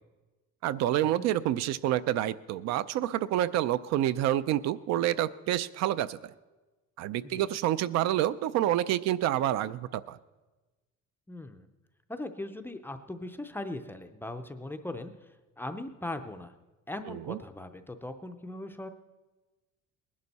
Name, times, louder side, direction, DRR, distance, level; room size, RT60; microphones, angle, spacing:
voice 1, 0.6-6.3 7.0-10.2 17.1-17.4, right 12 dB, 60° right, 16 dB, 0.5 m, -28 dB
voice 2, 11.3-11.7 12.1-16.5 16.9-18.9, left 2 dB, 5° left, 7 dB, 0.4 m, -39 dB
19.5 x 11.0 x 4.1 m, 1.2 s
cardioid pair, 165°, 30 cm